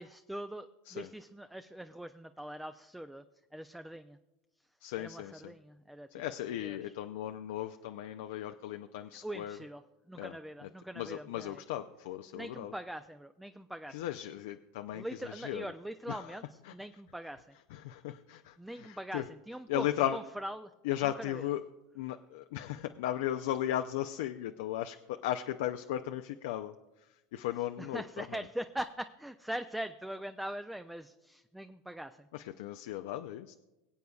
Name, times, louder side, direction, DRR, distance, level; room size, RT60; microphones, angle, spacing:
voice 1, 0.0-3.2 3.5-4.2 5.0-6.2 6.6-6.8 9.2-9.8 10.1-11.6 12.3-14.0 14.9-16.4 16.7-17.5 18.6-19.9 20.1-20.7 21.3-21.4 27.8-32.3, right 1 dB, 5° right, 9 dB, 0.4 m, -42 dB
voice 2, 4.8-5.5 6.1-9.6 10.2-10.4 10.6-12.7 13.9-15.7 16.1-16.4 16.6-16.7 17.7-19.3 19.7-20.2 20.8-21.6 21.9-28.4 32.3-33.5, left 12 dB, 75° left, 8 dB, 0.4 m, -36 dB
23.5 x 8.0 x 2.3 m, 1.0 s
hypercardioid pair, 105°, 0 cm